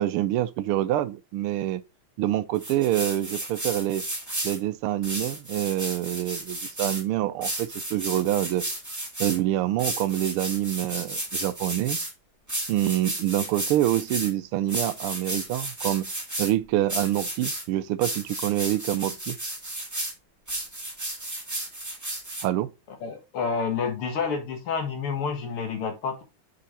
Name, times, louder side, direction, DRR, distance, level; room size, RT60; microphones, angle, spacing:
voice 1, 0.0-1.8 2.2-4.1 4.4-8.6 9.2-12.0 12.7-16.1 16.4-19.4 22.4-22.7, right 14 dB, 85° right, 1.5 m, -26 dB
sound 1, 2.6-4.6 5.0-7.0 7.4-9.4 9.8-12.1 12.5-14.3 14.7-16.5 16.9-17.6 18.0-20.1 20.5-22.4, right 1 dB, 10° right, 1.7 m, -33 dB
voice 2, 23.0-26.2, left 5 dB, 75° left, 2.3 m, -29 dB
5.6 x 5.1 x 4.1 m
omnidirectional pair, 2.4 m